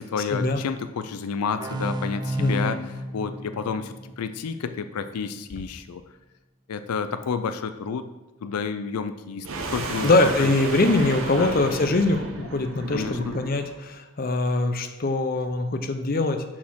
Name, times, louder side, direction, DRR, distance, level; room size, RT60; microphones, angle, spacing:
voice 1, 0.0-6.0 6.7-8.1 8.4-10.1 10.4-10.5 11.4-11.5 12.9-13.4, left 5 dB, 90° left, 10 dB, 0.4 m, -30 dB
sound 1, 1.6-5.0, right 1 dB, 20° right, 0.4 m, -32 dB
voice 2, 2.4-2.9 10.0-16.4, left 2 dB, 40° left, 7 dB, 0.6 m, -23 dB
sound 2, 9.4-13.8, right 3 dB, 65° right, 0.8 m, -33 dB
5.9 x 4.2 x 6.2 m, 1.1 s
head